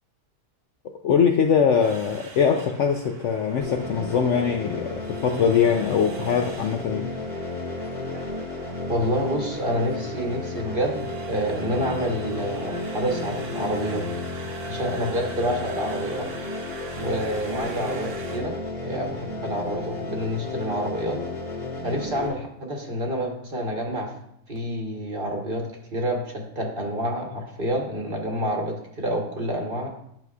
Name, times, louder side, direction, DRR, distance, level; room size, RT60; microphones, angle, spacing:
voice 1, 0.8-7.1, left 7 dB, 70° left, 0.7 m, -22 dB
sound 1, 1.8-18.4, right 4 dB, 75° right, 1.4 m, -44 dB
sound 2, 3.6-22.3, left 2 dB, 50° left, 1.4 m, -33 dB
voice 2, 8.9-14.0 14.7-16.3 17.0-18.6 18.8-21.2 21.8-24.1 24.5-25.7 25.9-29.9, equal, 40° right, 1.1 m, -28 dB
10.5 x 6.2 x 2.3 m
omnidirectional pair, 1.7 m